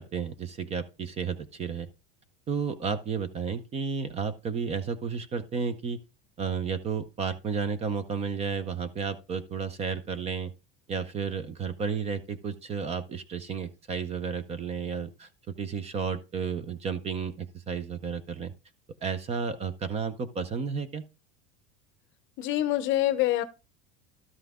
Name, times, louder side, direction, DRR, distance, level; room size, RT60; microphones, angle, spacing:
voice 1, 0.0-1.9 2.5-6.0 6.4-10.5 10.9-15.3 15.6-18.5 19.0-21.0, right 5 dB, 20° right, 0.5 m, -32 dB
voice 2, 22.4-23.4, left 14 dB, 40° left, 0.7 m, -25 dB
12.5 x 5.7 x 3.6 m
cardioid pair, 165°, 30 cm